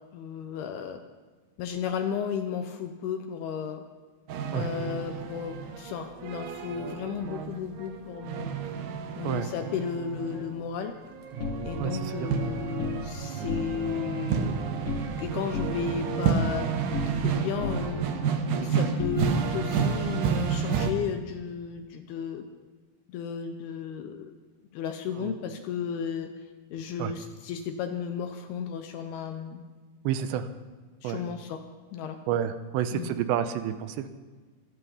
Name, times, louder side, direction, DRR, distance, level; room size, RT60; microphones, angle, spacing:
voice 1, 0.1-1.0 1.6-3.8 4.5-8.6 9.2-11.0 11.6-14.6 15.2-16.7 17.1-18.1 18.6-22.5 23.1-24.3 24.7-26.3 26.7-29.6 31.0-31.6 31.9-32.2 32.9-33.1, left 7 dB, 75° left, 7 dB, 2.5 m, -34 dB
sound 1, 4.3-20.9, right 6 dB, 70° right, 2.0 m, -30 dB
sound 2, 11.4-13.0 13.4-14.0 14.3-15.2 15.5-17.3 17.6-19.7, left 3 dB, 55° left, 3.2 m, -36 dB
voice 2, 11.8-12.3 18.5-18.8 25.1-25.3 27.0-27.1 30.0-30.5 31.0-31.2 32.3-34.1, right 10 dB, 90° right, 10 dB, 3.0 m, -30 dB
25.0 x 8.4 x 5.6 m, 1.4 s
omnidirectional pair, 5.0 m